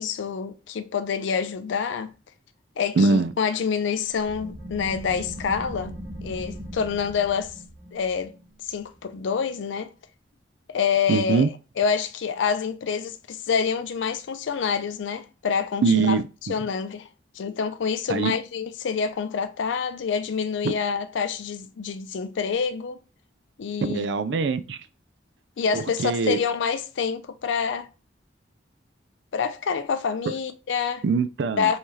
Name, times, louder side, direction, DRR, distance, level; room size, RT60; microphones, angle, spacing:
voice 1, 0.0-2.1 2.8-5.9 6.2-7.5 7.9-8.3 8.7-9.9 10.7-11.5 11.8-16.2 16.5-17.1 17.4-23.0 23.6-24.1 25.6-27.9 29.3-31.0 31.6-31.8, left 6 dB, 80° left, 0.4 m, -27 dB
voice 2, 3.0-3.3 11.1-11.5 15.8-16.2 18.1-18.3 20.6-20.7 23.9-24.8 25.7-26.4 31.0-31.7, right 4 dB, 70° right, 0.4 m, -22 dB
sound 1, 4.2-9.5, equal, 90° right, 1.9 m, -39 dB
5.6 x 2.8 x 3.1 m
head